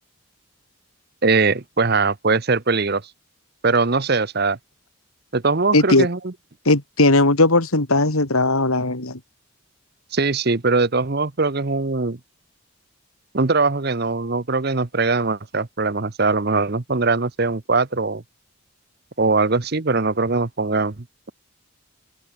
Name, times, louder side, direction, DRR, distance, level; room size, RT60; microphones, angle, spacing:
voice 1, 1.2-3.0 3.6-4.6 5.3-6.3 10.1-12.2 13.3-18.2 19.2-21.3, right 3 dB, 45° right, 0.9 m, -21 dB
voice 2, 5.7-6.1 6.6-9.2, left 2 dB, 85° left, 3.0 m, -17 dB
open air
head